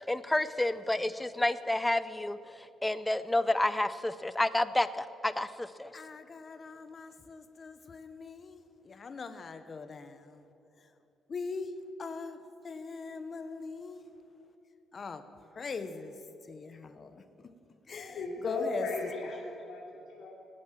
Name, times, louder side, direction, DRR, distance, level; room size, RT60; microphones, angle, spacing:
voice 1, 0.1-5.9, left 1 dB, 10° left, 14 dB, 0.5 m, -30 dB
voice 2, 5.9-10.4 11.3-11.7 12.0-14.1 14.9-15.2 15.5-16.1 16.5-17.2 17.9-18.9, left 4 dB, 40° left, 10 dB, 0.9 m, -41 dB
voice 3, 18.0-20.3, left 3 dB, 70° left, -7 dB, 3.8 m, -36 dB
18.5 x 9.6 x 7.4 m, 2.9 s
cardioid pair, 90°, 0 cm